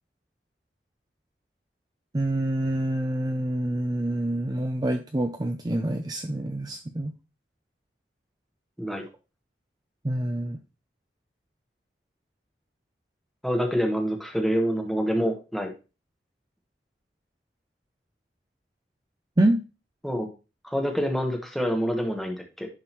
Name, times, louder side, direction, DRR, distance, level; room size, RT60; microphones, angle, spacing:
voice 1, 2.1-7.1 10.0-10.6 19.4-19.6, right 1 dB, 25° right, 5 dB, 0.5 m, -26 dB
voice 2, 13.4-15.7 20.0-20.3 20.6-22.7, equal, ahead, 2 dB, 1.2 m, -26 dB
11.0 x 3.8 x 3.0 m, 0.31 s
head